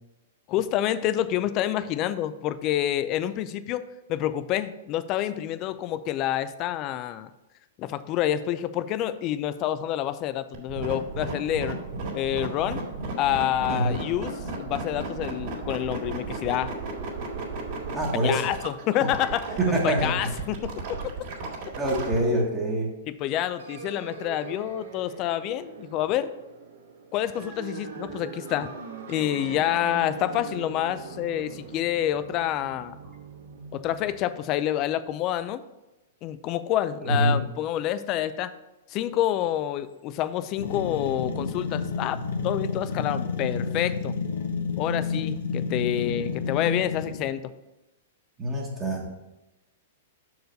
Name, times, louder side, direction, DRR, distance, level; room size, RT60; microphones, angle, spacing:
voice 1, 0.5-3.8 4.1-7.3 7.8-11.8 12.1-12.9 13.2-14.3 14.6-16.7 18.2-21.0 23.1-26.3 27.1-28.7 29.1-33.0 33.7-35.6 36.2-38.5 38.9-44.1 44.8-47.5, left 12 dB, 35° left, 14 dB, 0.4 m, -28 dB
sound 1, 10.5-22.2, right 3 dB, 55° right, 2.2 m, -34 dB
voice 2, 17.9-18.5 19.6-20.3 21.8-23.0 37.0-37.4 48.4-49.1, right 1 dB, 20° right, -3 dB, 1.3 m, -25 dB
sound 2, 23.6-34.1, right 6 dB, 75° right, 1.1 m, -41 dB
sound 3, 40.6-47.4, left 4 dB, 75° left, 0.9 m, -30 dB
6.3 x 4.7 x 5.2 m, 1.0 s
hypercardioid pair, 135°, 0 cm